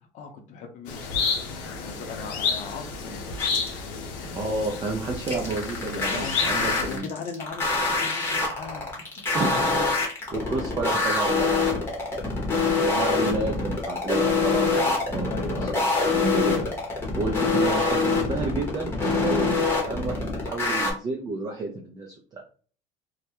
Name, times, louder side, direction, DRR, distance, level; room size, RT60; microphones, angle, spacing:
voice 1, 0.1-1.2 1.7-3.2 6.0-8.9 15.3-15.8 17.4-17.8, left 5 dB, 50° left, 4 dB, 0.6 m, -38 dB
sound 1, 0.9-7.0, left 5 dB, 90° left, 0.6 m, -31 dB
sound 2, 3.4-3.8 5.3-20.9, left 3 dB, 15° left, 0.8 m, -25 dB
voice 2, 4.2-7.1 9.3-9.9 10.3-11.9 12.8-15.3 15.6-15.7 16.1-16.6 17.2-22.4, right 3 dB, 25° right, 0 dB, 0.4 m, -30 dB
2.3 x 2.1 x 2.8 m, 0.41 s
cardioid pair, 135°, 16 cm